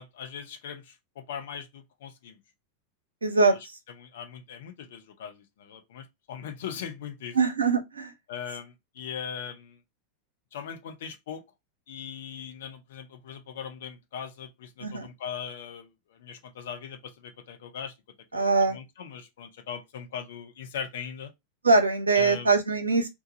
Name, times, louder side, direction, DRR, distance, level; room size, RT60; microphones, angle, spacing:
voice 1, 0.0-2.4 3.4-3.7 4.0-7.4 8.3-9.8 10.5-11.4 11.9-17.9 18.3-21.3 22.1-22.5, left 7 dB, 55° left, 0.8 m, -40 dB
voice 2, 3.2-3.5 7.4-8.1 14.8-15.1 18.3-18.8 21.6-23.1, right 3 dB, 75° right, 0.8 m, -22 dB
3.0 x 2.3 x 4.0 m
figure-of-eight pair, 90°, 0 cm